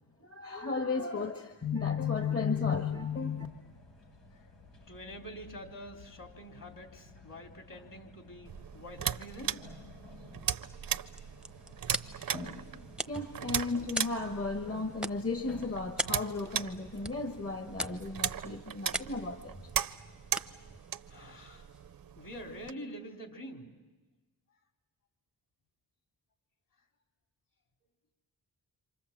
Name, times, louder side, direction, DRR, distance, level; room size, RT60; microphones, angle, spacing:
voice 1, 0.2-3.5 13.1-19.7, left 4 dB, 35° left, 5 dB, 1.7 m, -34 dB
sound 1, 2.7-18.6, left 2 dB, 85° left, 3.8 m, -53 dB
voice 2, 4.9-9.6 21.1-21.7 22.1-23.7, equal, 50° left, 3 dB, 4.1 m, -46 dB
sound 2, 8.4-22.7, right 9 dB, 55° right, 0.8 m, -38 dB
sound 3, 10.9-22.1, right 1 dB, ahead, 0.9 m, -43 dB
27.5 x 26.5 x 7.6 m, 1.2 s
cardioid pair, 70°, 41 cm